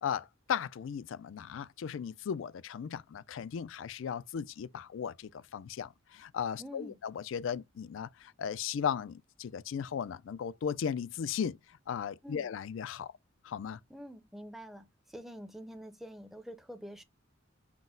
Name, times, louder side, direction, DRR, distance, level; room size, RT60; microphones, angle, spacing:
voice 1, 0.0-13.1 13.4-13.8, left 7 dB, 75° left, 0.3 m, -36 dB
voice 2, 6.6-7.0 12.2-12.5 13.9-17.0, equal, ahead, 0.5 m, -47 dB
6.0 x 2.1 x 3.7 m
head